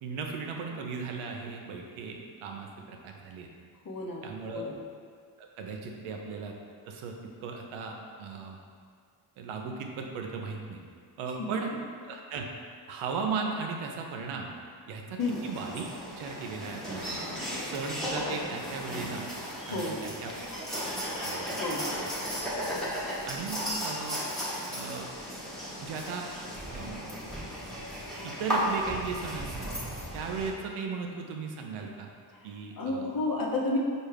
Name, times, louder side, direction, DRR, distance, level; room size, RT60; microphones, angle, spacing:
voice 1, 0.0-3.5 4.2-4.7 5.4-6.5 6.9-8.6 9.4-10.8 11.2-11.7 12.1-12.5 12.9-14.5 14.9-15.9 16.2-17.2 17.7-19.3 19.7-20.3 20.6-20.8 21.2-21.6 22.0-22.1 22.6-22.7 23.2-24.2 24.7-25.1 25.8-26.3 26.7-27.0 28.2-29.7 30.1-32.1 32.4-33.1, right 5 dB, 75° right, 2 dB, 0.6 m, -37 dB
voice 2, 3.8-4.8 11.4-11.5 15.2-15.4 19.7-20.1 21.6-21.9 32.3-32.5 32.8-33.8, left 2 dB, 45° left, -2 dB, 0.8 m, -32 dB
sound 1, 15.2-30.5, equal, ahead, 1.0 m, -35 dB
4.4 x 2.4 x 3.3 m, 2.1 s
supercardioid pair, 50°, 50 cm